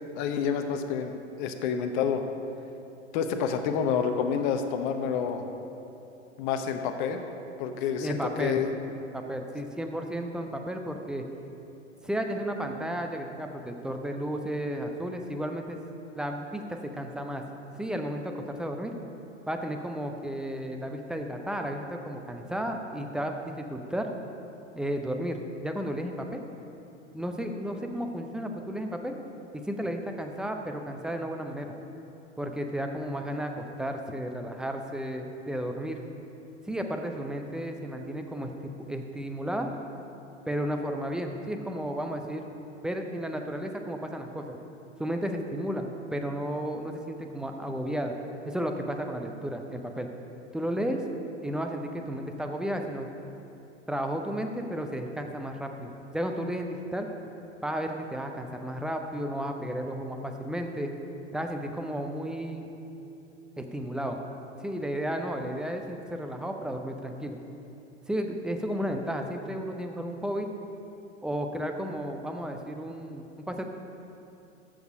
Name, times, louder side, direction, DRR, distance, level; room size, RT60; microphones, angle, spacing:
voice 1, 0.1-2.2 3.1-5.4 6.4-7.2 7.6-8.7, left 7 dB, 40° left, 6 dB, 0.9 m, -28 dB
voice 2, 8.0-8.6 9.1-11.2 12.0-15.8 16.2-17.4 17.8-18.9 19.5-24.1 24.8-26.4 27.1-29.2 29.5-31.7 32.4-36.0 36.7-38.5 38.9-39.7 40.5-42.5 42.8-44.6 45.0-48.1 48.5-50.1 50.5-51.0 51.4-53.1 53.9-57.1 57.6-60.9 61.3-62.7 63.6-64.2 64.6-67.4 68.1-70.5 71.2-73.7, equal, ahead, 4 dB, 0.5 m, -33 dB
13.5 x 6.3 x 5.4 m, 2.8 s
figure-of-eight pair, 95°, 36 cm